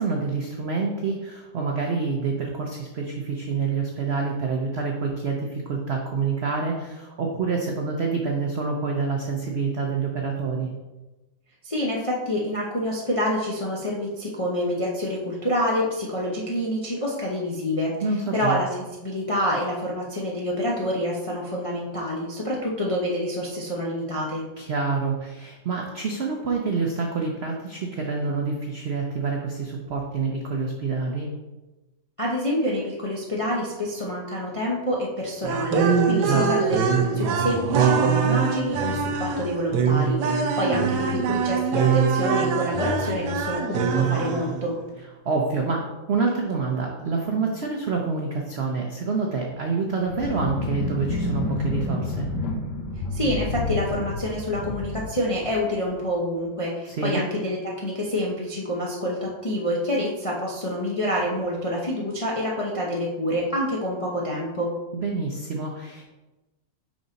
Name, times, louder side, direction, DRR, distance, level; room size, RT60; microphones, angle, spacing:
voice 1, 0.0-10.7 18.0-18.6 24.6-31.3 36.2-36.5 45.2-52.3 56.9-57.2 64.9-66.0, right 4 dB, 85° right, 0 dB, 0.5 m, -27 dB
voice 2, 11.6-17.9 18.3-24.4 32.2-44.8 53.1-64.7, equal, 50° left, -4 dB, 0.4 m, -27 dB
sound 1, 35.4-44.7, right 6 dB, 70° right, 1.2 m, -23 dB
sound 2, 50.0-56.0, left 2 dB, 70° left, 1.6 m, -29 dB
5.2 x 4.9 x 3.9 m, 1.1 s
omnidirectional pair, 2.0 m